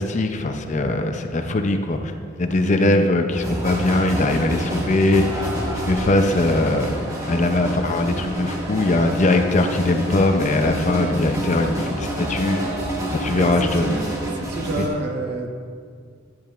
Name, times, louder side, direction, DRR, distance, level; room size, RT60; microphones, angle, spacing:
voice 1, 0.0-5.5 5.8-6.9 7.3-12.6 13.1-13.9 14.8-14.9, left 2 dB, 35° left, 6 dB, 0.5 m, -21 dB
sound 1, 3.3-14.9, equal, 15° right, 1.4 m, -28 dB
voice 2, 13.2-14.0 14.3-15.5, right 2 dB, 55° right, 2 dB, 1.0 m, -28 dB
10.5 x 10.5 x 2.4 m, 2.1 s
head